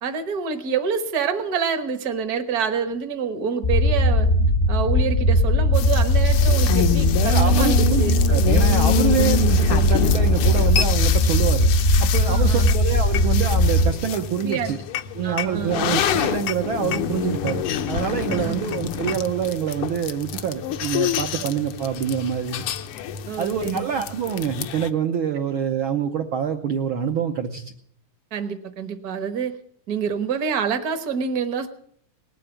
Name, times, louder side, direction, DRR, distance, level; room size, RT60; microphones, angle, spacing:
voice 1, 0.0-4.3 4.7-8.2 12.3-12.7 14.4-14.7 15.2-15.9 18.3-18.6 23.3-23.8 28.3-29.6 29.9-31.7, right 6 dB, 55° right, 8 dB, 1.0 m, -27 dB
sound 1, 3.6-13.9, left 1 dB, 55° left, 0.7 m, -19 dB
sound 2, 5.7-24.9, left 9 dB, 80° left, 1.2 m, -27 dB
voice 2, 7.3-11.7 12.0-14.8 15.1-22.6 23.4-27.7, right 8 dB, 85° right, 5 dB, 1.1 m, -26 dB
19.5 x 8.4 x 8.9 m, 0.67 s
omnidirectional pair, 3.5 m